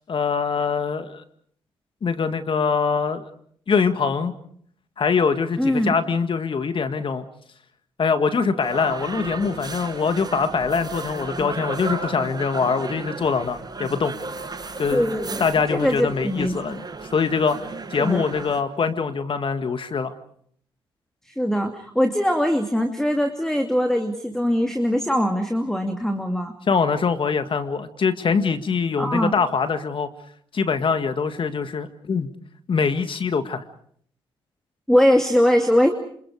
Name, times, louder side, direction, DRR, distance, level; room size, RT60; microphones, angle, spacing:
voice 1, 0.1-1.2 2.0-3.2 3.7-4.3 5.0-7.3 8.0-14.1 14.8-15.0 15.4-16.8 17.1-17.6 17.9-20.1 26.7-30.1 30.5-32.3 32.7-33.6, left 5 dB, 50° left, 9 dB, 2.0 m, -23 dB
voice 2, 5.6-5.9 14.9-16.5 18.0-18.2 21.3-26.5 29.0-29.3 34.9-35.9, equal, 5° left, 5 dB, 2.7 m, -21 dB
sound 1, 8.6-18.6, right 3 dB, 35° right, 6.2 m, -34 dB
27.5 x 27.5 x 5.0 m, 0.64 s
hypercardioid pair, 50°, 11 cm